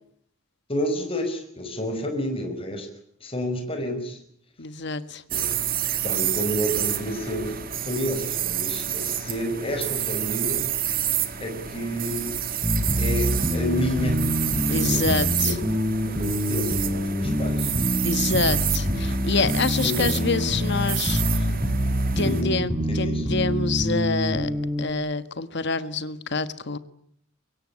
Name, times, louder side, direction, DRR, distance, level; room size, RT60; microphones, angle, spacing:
voice 1, 0.7-2.9 3.2-4.2 5.3-5.5 6.0-7.6 7.8-10.7 11.4-12.4 13.0-14.3 14.7-15.5 16.1-17.7 19.8-20.0 22.2-22.5 23.0-23.3, equal, 30° left, 5 dB, 5.4 m, -29 dB
voice 2, 4.6-5.2 14.7-15.6 18.0-21.5 22.2-24.5 24.8-26.8, left 4 dB, 60° left, 12 dB, 1.5 m, -27 dB
sound 1, 5.3-22.4, right 10 dB, 45° right, 2.2 m, -29 dB
sound 2, 12.6-24.9, equal, 20° right, 6.8 m, -26 dB
24.0 x 22.0 x 9.9 m, 0.69 s
head